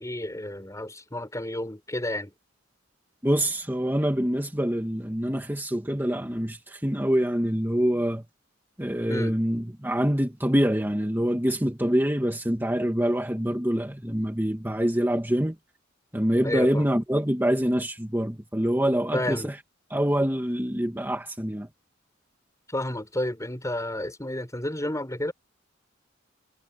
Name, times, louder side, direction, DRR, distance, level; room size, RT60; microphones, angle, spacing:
voice 1, 0.0-2.3 9.1-9.4 16.4-16.9 19.1-19.5 22.7-25.3, left 1 dB, 15° left, 5.8 m, -31 dB
voice 2, 3.2-8.2 8.8-15.6 16.1-19.6 19.9-21.7, equal, 10° right, 2.3 m, -25 dB
head